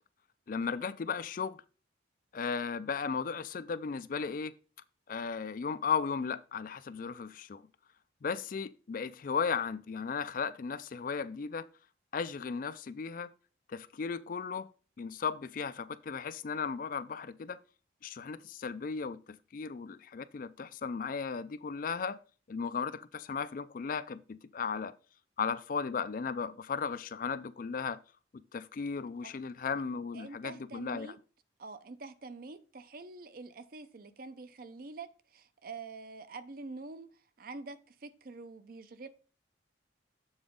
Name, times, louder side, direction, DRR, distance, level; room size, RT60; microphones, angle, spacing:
voice 1, 0.5-1.6 2.3-4.5 5.1-7.6 8.2-11.7 12.1-13.3 13.7-14.7 15.0-17.6 18.0-22.2 22.5-24.9 25.4-28.0 28.5-31.1, left 5 dB, 45° left, 0.3 m, -35 dB
voice 2, 30.1-31.2 31.6-39.1, right 3 dB, 50° right, 0.5 m, -46 dB
7.2 x 3.9 x 5.1 m
head